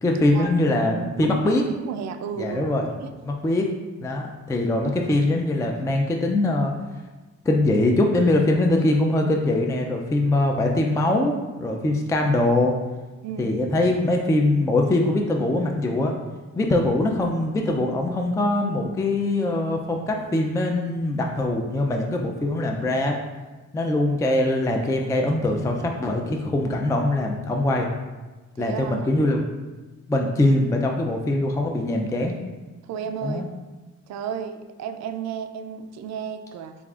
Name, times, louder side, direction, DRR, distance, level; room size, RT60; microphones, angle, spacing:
voice 1, 0.0-1.6 2.4-2.9 3.2-3.7 4.0-6.7 7.5-12.7 13.4-16.1 16.6-23.2 23.7-27.9 28.6-29.4 30.1-32.4 33.2-33.5, left 1 dB, 10° left, 2 dB, 0.3 m, -22 dB
voice 2, 1.8-2.7 3.0-3.1 13.2-13.5 28.6-29.1 32.8-33.5 34.1-36.7, right 7 dB, 65° right, 8 dB, 0.4 m, -33 dB
6.9 x 2.4 x 2.4 m, 1.2 s
cardioid pair, 90°, 30 cm